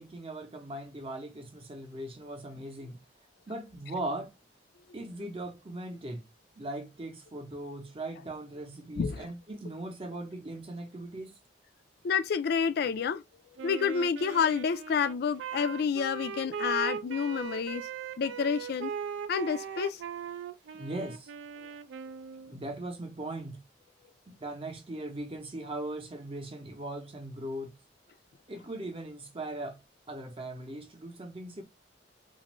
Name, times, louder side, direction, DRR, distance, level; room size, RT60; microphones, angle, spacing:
voice 1, 0.0-3.0 3.5-4.3 4.9-6.3 6.6-11.4 20.7-21.3 22.5-23.6 24.3-27.7 28.5-29.8 30.1-31.6, right 1 dB, 30° right, 0.6 m, -39 dB
voice 2, 12.0-13.2 13.6-17.9 18.2-18.9 19.3-20.0, left 6 dB, 60° left, 0.3 m, -29 dB
Wind instrument woodwind instrument, 13.6-22.6, right 7 dB, 90° right, 0.4 m, -39 dB
2.5 x 2.4 x 3.0 m
head